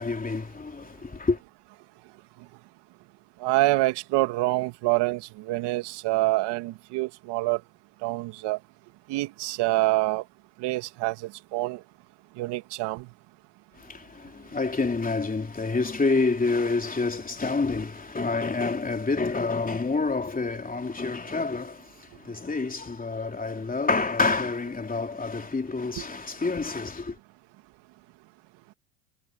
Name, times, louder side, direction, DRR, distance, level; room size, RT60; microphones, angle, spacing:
voice 1, 0.0-1.4 13.8-27.2, left 3 dB, 20° left, 3.3 m, -28 dB
voice 2, 3.4-7.6 8.0-8.6 9.1-10.2 10.6-11.8 12.4-13.1 26.0-26.1, right 19 dB, 65° right, 2.3 m, -26 dB
hypercardioid pair, 75°, 45 cm